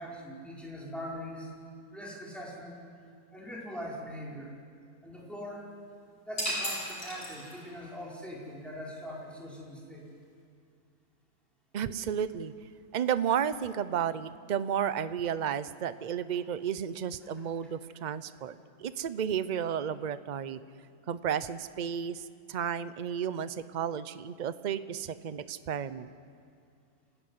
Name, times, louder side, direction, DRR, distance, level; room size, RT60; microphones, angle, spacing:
voice 1, 0.0-1.5 1.9-2.8 3.3-4.5 5.0-5.6 6.3-10.1 12.9-13.0 16.3-16.4 17.2-17.3, equal, ahead, -4 dB, 4.8 m, -42 dB
sound 1, 6.4-7.8, equal, 70° left, 7.0 m, -35 dB
voice 2, 11.7-12.5 12.9-20.6 21.1-26.1, right 8 dB, 50° right, 14 dB, 0.5 m, -32 dB
26.5 x 15.5 x 9.7 m, 2.3 s
omnidirectional pair, 1.7 m